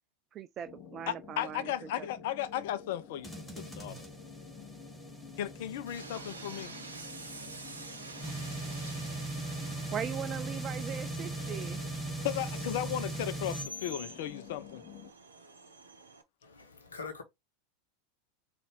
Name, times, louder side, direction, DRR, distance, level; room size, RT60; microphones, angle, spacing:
voice 1, 0.3-2.1 9.9-11.8, right 9 dB, 30° right, 0.4 m, -40 dB
sound 1, 0.6-15.1, left 7 dB, 35° left, 0.9 m, -51 dB
voice 2, 1.1-3.3 3.6-4.0 5.4-6.7 12.2-14.8, left 11 dB, 55° left, 0.5 m, -35 dB
sound 2, 3.2-13.6, right 2 dB, 5° left, 1.5 m, -40 dB
Train, 5.9-16.2, right 2 dB, 80° right, 0.7 m, -48 dB
voice 3, 16.4-17.2, left 4 dB, 80° left, 1.0 m, -44 dB
4.1 x 2.6 x 4.6 m
figure-of-eight pair, 85°, 0 cm